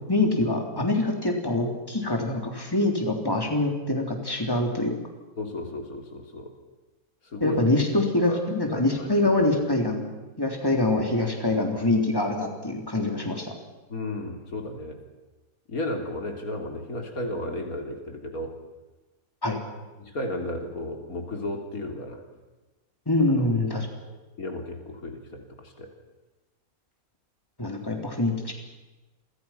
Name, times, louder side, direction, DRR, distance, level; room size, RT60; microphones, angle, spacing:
voice 1, 0.1-5.0 7.4-10.0 10.4-13.5 19.4-19.6 23.0-23.9 27.6-28.5, left 2 dB, 15° left, 2 dB, 3.5 m, -24 dB
voice 2, 5.4-6.5 7.2-7.6 8.3-8.4 8.7-9.3 13.9-15.0 15.7-18.5 20.0-22.2 23.3-23.5 24.1-25.9, left 1 dB, 75° left, 3 dB, 3.8 m, -34 dB
30.0 x 24.5 x 5.9 m, 1.1 s
omnidirectional pair, 1.5 m